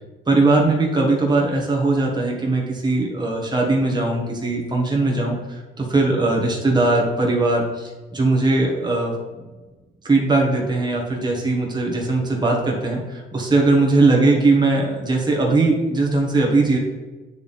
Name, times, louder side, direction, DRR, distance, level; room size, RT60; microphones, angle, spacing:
voice 1, 0.3-9.4 10.0-16.8, right 2 dB, 20° right, -1 dB, 1.4 m, -20 dB
8.3 x 3.4 x 4.2 m, 1.2 s
cardioid pair, 90°, 20 cm